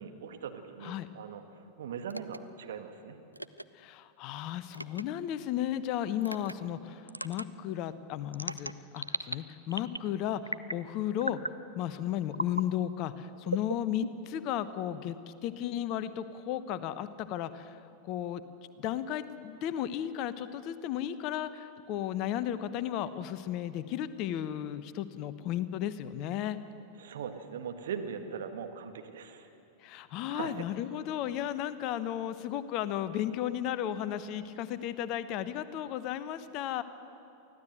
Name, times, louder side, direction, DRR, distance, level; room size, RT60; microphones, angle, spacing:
voice 1, 0.0-3.2 6.3-6.4 27.0-29.5 30.3-30.6, right 7 dB, 60° right, 5 dB, 1.8 m, -40 dB
sound 1, 2.1-2.4 3.3-3.6 4.7-5.0 6.2-6.5 7.1-7.4 8.3-9.3 9.7-10.1 10.5-10.8 11.2-11.6 12.3-12.6 13.5-14.4, right 1 dB, 90° right, 0.5 m, -36 dB
voice 2, 3.7-18.4 18.8-26.6 29.8-36.8, left 11 dB, 40° left, 13 dB, 0.9 m, -34 dB
24.0 x 15.5 x 7.9 m, 2.7 s
figure-of-eight pair, 90°, 0 cm